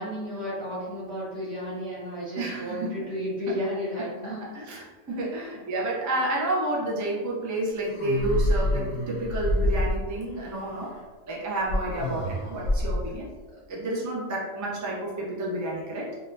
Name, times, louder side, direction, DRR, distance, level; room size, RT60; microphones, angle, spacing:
voice 1, 0.0-4.5 13.5-13.6, equal, 90° right, -9 dB, 2.0 m, -33 dB
voice 2, 2.4-2.9 4.2-10.9 11.3-13.3 13.7-16.1, right 1 dB, 30° right, -4 dB, 0.3 m, -30 dB
sound 1, 7.8-10.3 11.7-13.1, left 1 dB, 50° left, 0.5 m, -27 dB
3.9 x 2.2 x 2.5 m, 1.4 s
omnidirectional pair, 1.4 m